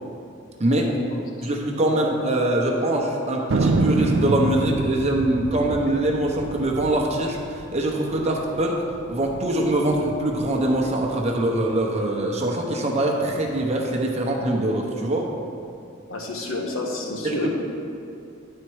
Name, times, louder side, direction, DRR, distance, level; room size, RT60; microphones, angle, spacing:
voice 1, 0.6-0.9 1.4-8.8 9.1-15.3 17.2-17.5, right 1 dB, 35° right, 0 dB, 0.8 m, -23 dB
Thunder, 3.5-8.3 8.6-8.7 8.9-9.4 9.9-11.1, right 2 dB, 65° right, 0.5 m, -26 dB
voice 2, 16.1-17.5, left 2 dB, 85° left, 0 dB, 1.1 m, -30 dB
9.8 x 4.4 x 4.7 m, 2.6 s
head